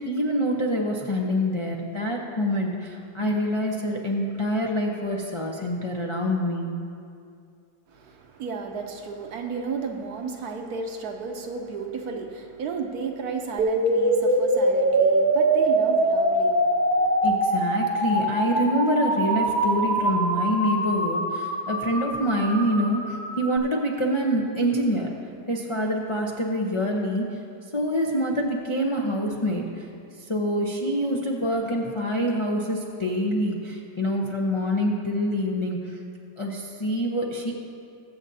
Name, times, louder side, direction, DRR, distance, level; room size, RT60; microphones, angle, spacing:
voice 1, 0.0-6.7 17.2-25.1 25.5-27.2 27.7-29.6 30.3-35.8 36.4-37.5, equal, 45° left, -2 dB, 0.4 m, -26 dB
voice 2, 7.9-17.4, right 5 dB, 65° right, 3 dB, 1.3 m, -34 dB
sound 1, 13.6-23.6, right 1 dB, 35° right, 0.8 m, -23 dB
21.5 x 7.6 x 2.7 m, 2.5 s
omnidirectional pair, 1.9 m